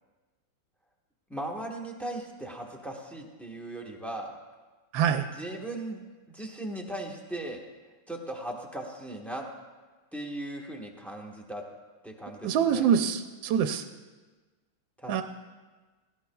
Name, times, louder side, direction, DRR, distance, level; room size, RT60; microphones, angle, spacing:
voice 1, 1.3-4.4 5.3-6.0 6.3-7.6 8.1-9.5 10.1-11.6 12.0-12.9 15.0-15.2, right 1 dB, ahead, 0 dB, 0.8 m, -38 dB
voice 2, 4.9-5.3 12.4-13.8 15.1-15.2, right 8 dB, 70° right, 7 dB, 1.3 m, -25 dB
17.5 x 17.0 x 2.3 m, 1.3 s
omnidirectional pair, 2.3 m